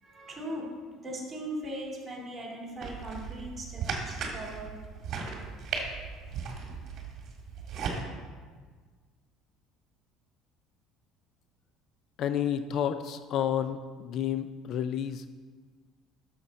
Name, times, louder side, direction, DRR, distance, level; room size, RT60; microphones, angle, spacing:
voice 1, 0.0-4.7, right 1 dB, 20° right, -3 dB, 2.6 m, -39 dB
sound 1, 2.8-8.0, right 5 dB, 50° right, 1.7 m, -37 dB
voice 2, 12.2-15.3, left 9 dB, 50° left, 10 dB, 0.4 m, -30 dB
12.0 x 6.6 x 4.0 m, 1.5 s
cardioid pair, 135°, 0 cm